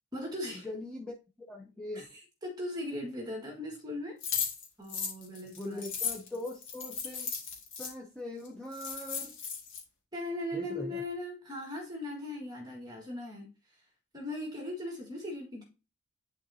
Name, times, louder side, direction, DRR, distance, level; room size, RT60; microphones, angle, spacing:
voice 1, 0.1-0.7 1.9-4.2 4.8-5.9 10.1-13.5 14.1-15.6, left 1 dB, 20° right, 0 dB, 1.6 m, -39 dB
voice 2, 0.6-1.1 1.5-2.0 5.6-7.3 7.8-9.3 10.5-11.0, left 1 dB, 5° left, 0 dB, 0.7 m, -41 dB
sound 1, 4.2-7.9 8.4-8.5 8.7-9.8, left 6 dB, 60° left, 1.9 m, -36 dB
10.0 x 3.8 x 2.8 m, 0.30 s
head